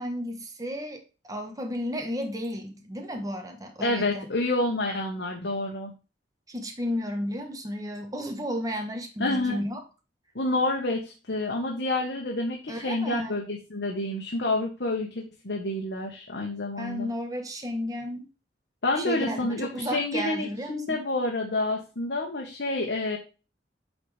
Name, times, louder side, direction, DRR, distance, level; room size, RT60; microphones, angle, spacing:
voice 1, 0.0-4.3 6.5-9.8 12.7-13.4 16.8-18.3 19.0-21.0, equal, 20° right, 1.2 m, -33 dB
voice 2, 3.8-5.9 9.2-9.6 10.3-17.1 18.8-23.2, left 2 dB, 70° left, 1.4 m, -28 dB
8.6 x 4.3 x 3.4 m
head